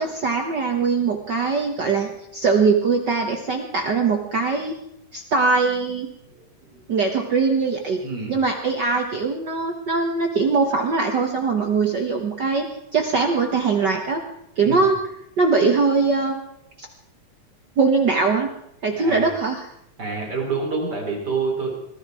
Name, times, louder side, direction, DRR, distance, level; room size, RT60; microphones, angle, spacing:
voice 1, 0.0-4.8 5.1-6.1 6.9-8.0 8.3-14.2 14.6-15.0 15.4-16.4 16.8-16.9 17.8-18.5 18.8-19.7, right 4 dB, 65° right, 3 dB, 1.0 m, -21 dB
voice 2, 6.3-7.0 8.0-8.3 14.6-14.9 18.9-19.3 20.0-21.8, right 4 dB, 30° right, -1 dB, 4.4 m, -28 dB
22.0 x 13.0 x 4.8 m, 0.76 s
omnidirectional pair, 3.8 m